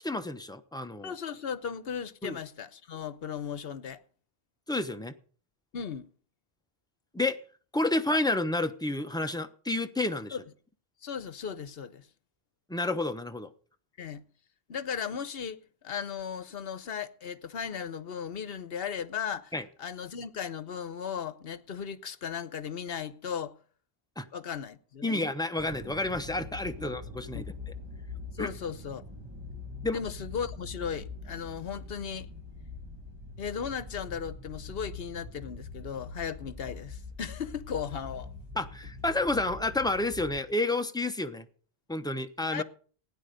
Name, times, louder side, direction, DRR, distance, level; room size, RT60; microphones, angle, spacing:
voice 1, 0.0-1.1 2.2-2.4 4.7-5.1 7.1-7.4 7.7-10.4 12.7-13.5 19.5-19.6 24.2-24.3 25.0-27.4 28.4-28.5 29.8-30.0 38.6-41.5 41.9-42.6, left 2 dB, 5° left, 0.8 m, -30 dB
voice 2, 1.0-4.0 5.7-6.1 10.3-10.4 11.0-12.1 14.0-14.2 14.7-15.6 15.8-19.5 19.8-23.6 24.3-25.2 26.8-26.9 27.3-27.5 28.3-29.0 29.9-32.3 33.4-38.3 42.5-42.6, left 7 dB, 65° left, 1.1 m, -36 dB
sound 1, 25.6-40.4, left 3 dB, 25° right, 1.5 m, -43 dB
16.5 x 9.8 x 5.1 m
omnidirectional pair, 1.1 m